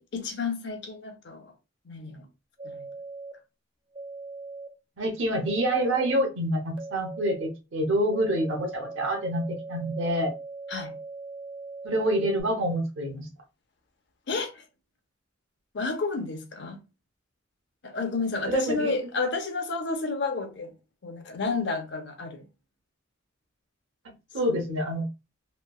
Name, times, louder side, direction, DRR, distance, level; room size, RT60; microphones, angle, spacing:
voice 1, 0.0-1.5 1.9-2.3 2.6-2.9 10.7-11.0 14.3-14.6 15.7-16.8 17.8-20.7 21.0-22.5 24.4-24.6, left 4 dB, 65° left, 0.6 m, -31 dB
sound 1, 2.6-3.3 3.9-4.7 5.5-6.1 6.8-7.5 8.1-12.4, right 3 dB, 25° right, 0.5 m, -40 dB
voice 2, 5.0-10.3 11.8-13.3 18.5-18.9 24.3-25.1, right 1 dB, 90° right, 0.8 m, -27 dB
3.1 x 2.3 x 2.3 m
head